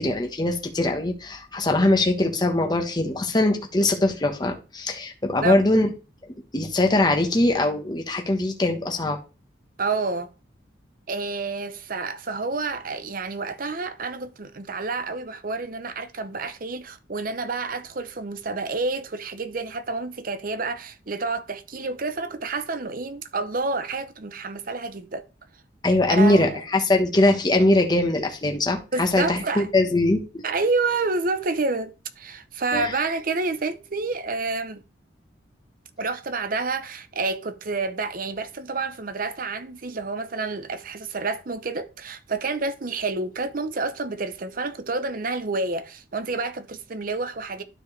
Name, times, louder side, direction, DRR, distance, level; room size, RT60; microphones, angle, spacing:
voice 1, 0.0-5.9 6.5-9.2 25.8-30.4 32.7-32.9, left 2 dB, 25° left, 1.1 m, -22 dB
voice 2, 9.8-10.3 11.1-25.3 26.1-26.6 28.9-29.7 30.4-34.8 36.0-47.6, right 3 dB, 50° right, 0.8 m, -29 dB
12.5 x 4.5 x 3.3 m
head